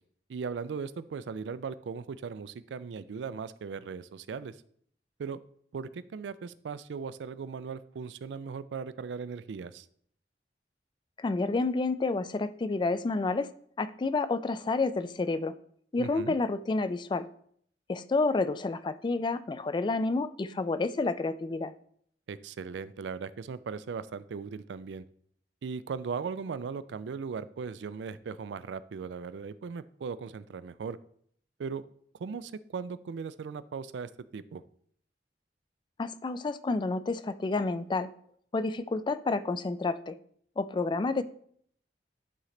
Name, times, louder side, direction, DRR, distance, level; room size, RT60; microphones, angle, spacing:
voice 1, 0.3-4.6 5.2-5.4 5.7-9.9 16.0-16.4 22.3-25.0 25.6-31.0 31.6-31.8 32.2-34.6, right 5 dB, 85° right, 15 dB, 0.4 m, -38 dB
voice 2, 11.2-13.5 13.8-15.5 15.9-17.3 17.9-21.7 36.0-38.1 38.5-40.2 40.6-41.2, left 3 dB, 25° left, 14 dB, 0.3 m, -29 dB
11.0 x 3.8 x 3.2 m, 0.63 s
head